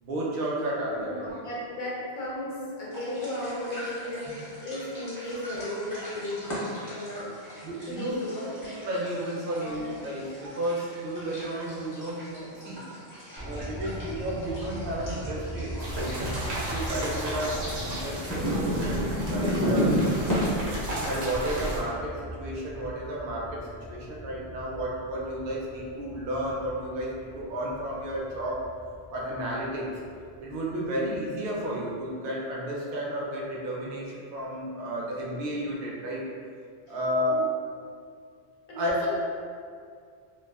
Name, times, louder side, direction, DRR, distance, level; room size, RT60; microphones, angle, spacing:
voice 1, 0.0-1.3 7.6-8.1 8.6-12.8 13.4-20.5 21.0-28.6 29.1-29.9 30.4-36.2 36.9-37.4 38.8-39.1, equal, 65° right, -4 dB, 0.7 m, -32 dB
voice 2, 0.9-7.3 7.9-8.7 9.5-9.9 36.9-37.0 37.3-37.4 38.7-39.2, left 1 dB, 55° left, -6 dB, 0.7 m, -35 dB
sound 1, 2.9-20.4, equal, 20° left, 0.7 m, -34 dB
sound 2, 13.4-31.6 31.8-31.9, right 1 dB, 30° right, 0.4 m, -41 dB
sound 3, 15.8-21.8, right 1 dB, 90° right, 0.9 m, -34 dB
2.3 x 2.3 x 2.3 m, 2.2 s
omnidirectional pair, 1.1 m